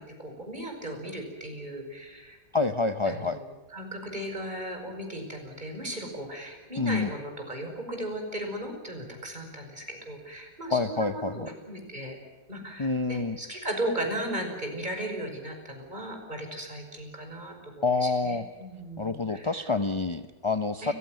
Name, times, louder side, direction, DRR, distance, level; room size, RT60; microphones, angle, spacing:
voice 1, 0.0-2.4 3.1-12.2 12.5-19.7 20.8-20.9, right 1 dB, 25° right, 3 dB, 5.9 m, -36 dB
voice 2, 2.5-3.4 6.8-7.1 10.7-11.5 12.8-13.4 17.8-18.4 19.0-20.9, left 3 dB, 35° left, 9 dB, 0.5 m, -27 dB
30.0 x 15.5 x 9.3 m, 1.3 s
omnidirectional pair, 1.8 m